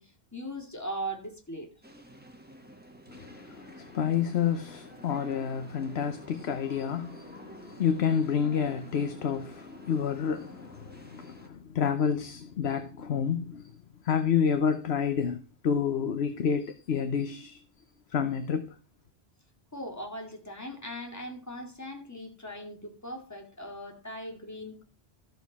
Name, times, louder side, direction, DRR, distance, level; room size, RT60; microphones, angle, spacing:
voice 1, 0.0-1.7 7.4-7.5 19.7-24.8, equal, 15° left, 2.3 m, -39 dB
sound 1, 1.8-11.5, right 1 dB, 10° right, 1.3 m, -50 dB
voice 2, 3.1-13.7 14.0-17.6 18.1-18.8, left 7 dB, 80° left, 1.1 m, -29 dB
13.5 x 6.9 x 4.1 m
omnidirectional pair, 1.1 m